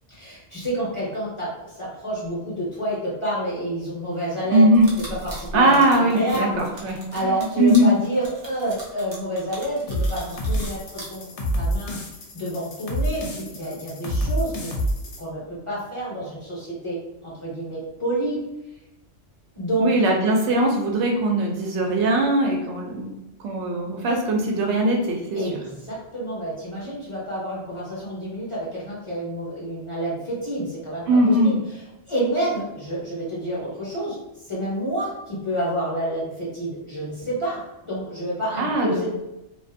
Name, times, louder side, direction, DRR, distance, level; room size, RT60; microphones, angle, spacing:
voice 1, 0.1-4.8 5.1-11.3 11.6-12.0 12.3-14.7 15.2-18.4 19.5-19.9 25.3-39.1, right 1 dB, 30° left, -7 dB, 0.7 m, -29 dB
voice 2, 4.5-4.9 5.5-7.9 19.8-23.1 23.4-25.2 31.1-31.5 38.6-39.0, right 1 dB, 75° right, 1 dB, 0.9 m, -20 dB
sound 1, 4.7-11.0, right 1 dB, 30° right, 0.5 m, -38 dB
sound 2, 9.9-15.2, equal, 75° left, 0.9 m, -28 dB
2.4 x 2.3 x 2.5 m, 0.93 s
omnidirectional pair, 1.2 m